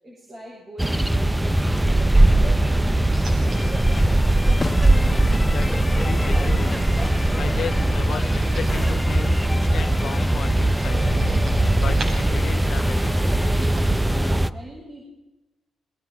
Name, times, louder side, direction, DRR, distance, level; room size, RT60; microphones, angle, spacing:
voice 1, 0.0-4.3 14.0-15.1, right 1 dB, 40° right, -4 dB, 7.6 m, -41 dB
sound 1, 0.8-14.5, right 1 dB, 10° right, 0.7 m, -20 dB
sound 2, 3.1-14.0, right 2 dB, 55° right, 7.3 m, -36 dB
sound 3, 3.5-13.7, left 3 dB, 25° left, 1.2 m, -37 dB
voice 2, 5.4-6.8 7.4-11.2 11.8-13.1, left 8 dB, 65° left, 12 dB, 1.1 m, -35 dB
27.5 x 23.5 x 4.8 m, 1.0 s
cardioid pair, 90°, 0 cm